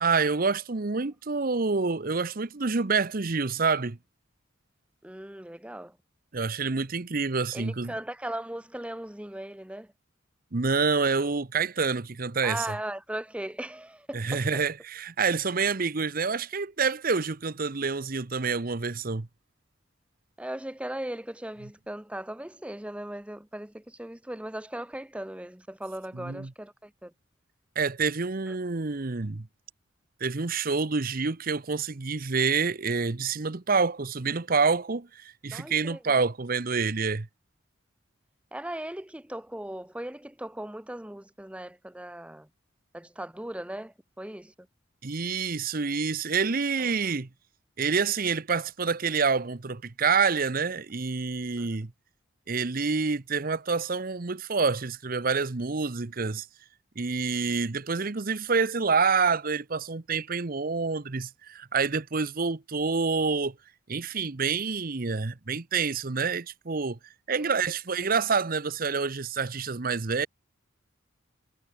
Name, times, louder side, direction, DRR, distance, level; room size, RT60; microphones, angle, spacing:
voice 1, 0.0-4.0 6.3-7.9 10.5-12.7 14.1-19.3 26.1-26.5 27.8-29.5 30.2-37.3 45.0-47.3 47.8-51.9 52.5-56.5 57.0-63.5 63.9-67.0 67.3-70.3, right 4 dB, 45° right, 0.9 m, -27 dB
voice 2, 5.0-6.0 7.5-9.9 12.4-14.6 20.4-27.1 28.4-28.5 35.5-36.2 38.5-42.5 42.9-44.5 46.8-46.9 51.6-51.8 67.4-67.5, right 1 dB, 5° right, 0.8 m, -38 dB
head